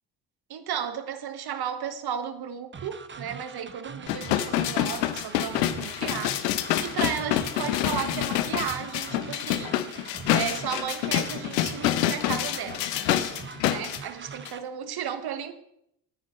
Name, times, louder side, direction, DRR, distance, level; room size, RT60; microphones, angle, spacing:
voice 1, 0.5-6.4 6.8-9.8 10.3-12.9 13.6-15.5, right 9 dB, 50° right, 1.6 m, -34 dB
sound 1, 2.7-14.6, right 5 dB, 25° right, 1.1 m, -43 dB
sound 2, 4.1-14.0 14.5-14.6, left 13 dB, 85° left, 1.0 m, -27 dB
26.5 x 9.7 x 3.2 m
hypercardioid pair, 65°, 48 cm